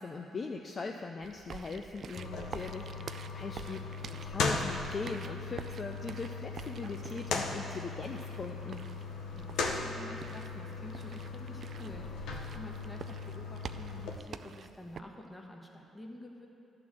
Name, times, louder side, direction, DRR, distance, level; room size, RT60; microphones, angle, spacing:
voice 1, 0.0-3.8 4.1-8.9, left 4 dB, 40° left, 3 dB, 0.4 m, -40 dB
sound 1, 1.2-15.0, right 6 dB, 55° right, 0.3 m, -48 dB
sound 2, 2.2-14.2, left 4 dB, 85° left, 0.7 m, -38 dB
voice 2, 3.5-3.9 9.3-16.5, left 1 dB, 15° left, 1 dB, 1.1 m, -49 dB
11.0 x 3.9 x 7.4 m, 2.7 s
cardioid pair, 90°, 0 cm